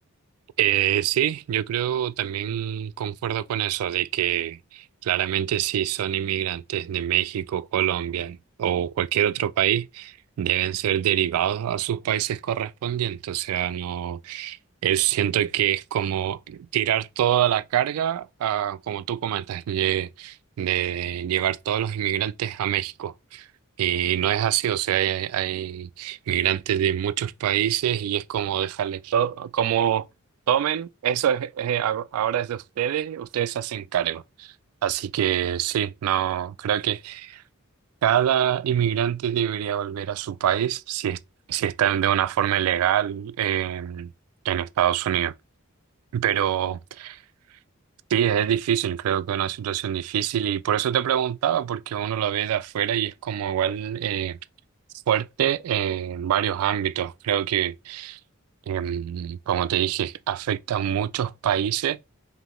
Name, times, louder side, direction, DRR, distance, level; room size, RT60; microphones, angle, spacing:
voice 1, 0.6-14.6 14.8-23.5 23.8-30.1 30.5-34.5 34.8-37.4 38.0-41.2 41.5-44.1 44.4-45.3 46.1-47.2 48.1-54.4 55.1-58.2 58.7-62.0, right 10 dB, 90° right, 0.3 m, -25 dB
5.1 x 2.7 x 3.1 m
head